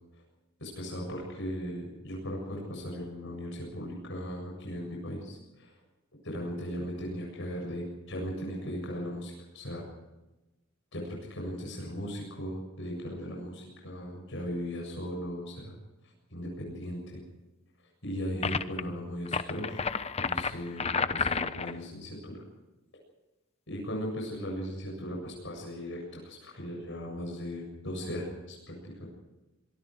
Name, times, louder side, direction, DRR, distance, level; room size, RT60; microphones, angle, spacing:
voice 1, 0.6-5.7 6.2-9.8 10.9-15.7 16.3-17.2 18.0-19.8 20.2-22.4 23.7-29.1, equal, 60° left, -1 dB, 7.5 m, -37 dB
sound 1, 18.4-18.8 19.3-21.8, left 5 dB, 30° left, 0.9 m, -31 dB
24.5 x 24.0 x 4.9 m, 1.1 s
head